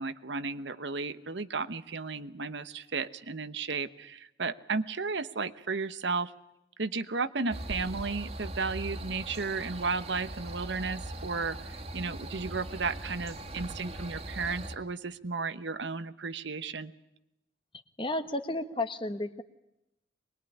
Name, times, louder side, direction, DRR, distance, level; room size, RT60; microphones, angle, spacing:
voice 1, 0.0-6.3 6.8-16.9, right 4 dB, 70° right, 12 dB, 1.0 m, -34 dB
sound 1, 7.5-14.8, right 1 dB, 35° right, 2.0 m, -40 dB
voice 2, 18.0-19.4, left 2 dB, 25° left, 9 dB, 1.2 m, -32 dB
24.0 x 21.0 x 10.0 m, 0.88 s
head